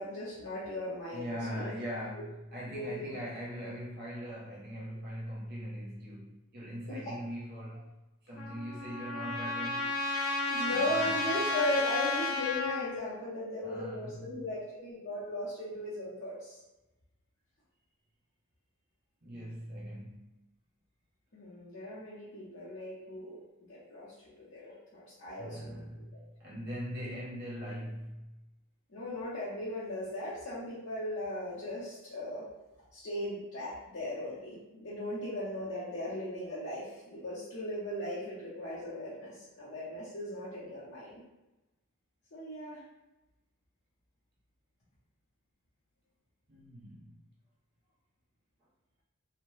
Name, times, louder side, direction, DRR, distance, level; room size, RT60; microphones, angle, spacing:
voice 1, 0.0-1.7 2.1-2.2 2.7-3.2 6.9-7.1 10.5-16.6 21.3-23.4 23.7-26.2 28.9-32.5 32.9-41.2 42.3-42.8, left 1 dB, 50° left, -12 dB, 0.8 m, -37 dB
voice 2, 1.1-7.9 8.2-9.9 10.6-11.1 13.6-14.2 19.2-20.3 25.4-28.3 46.5-47.2, equal, 50° right, -5 dB, 0.7 m, -41 dB
Trumpet, 8.4-12.9, left 3 dB, 80° left, 0.5 m, -33 dB
2.8 x 2.1 x 3.1 m, 1.0 s
head